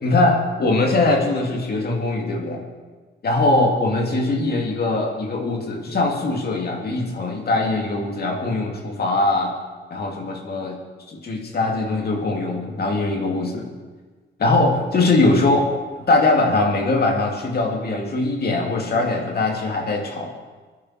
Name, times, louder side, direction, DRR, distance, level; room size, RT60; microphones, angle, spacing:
voice 1, 0.0-2.6 3.2-9.5 9.9-10.8 11.1-13.7 14.4-15.8 16.1-20.3, left 2 dB, 55° left, 1 dB, 2.3 m, -21 dB
20.0 x 10.5 x 4.4 m, 1.4 s
wide cardioid pair, 120°, 19 cm